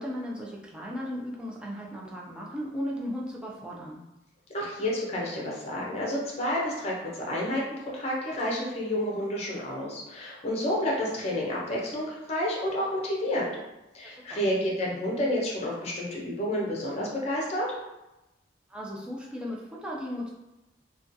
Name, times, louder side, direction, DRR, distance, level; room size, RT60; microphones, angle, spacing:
voice 1, 0.0-4.1 14.0-14.5 18.7-20.3, equal, 5° right, -4 dB, 0.4 m, -36 dB
voice 2, 4.5-13.5 13.9-17.7, left 1 dB, 35° left, -4 dB, 0.6 m, -30 dB
2.4 x 2.2 x 2.6 m, 0.96 s
head